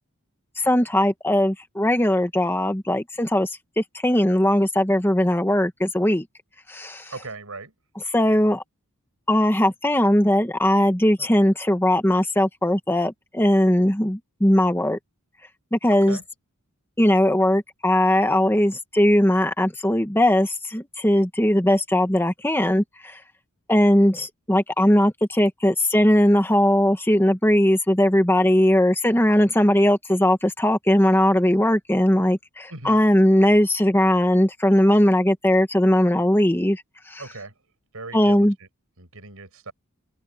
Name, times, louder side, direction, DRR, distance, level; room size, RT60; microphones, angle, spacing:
voice 1, 0.6-3.5 3.8-6.2 6.7-7.1 7.9-8.6 9.3-15.0 15.7-16.2 17.0-23.2 23.7-37.3 38.1-38.5, left 1 dB, 10° left, 1.4 m, -19 dB
voice 2, 7.1-7.7 15.9-16.2 32.7-33.0 37.2-37.5 37.9-38.5 39.0-39.7, right 3 dB, 65° right, 8.0 m, -38 dB
open air
head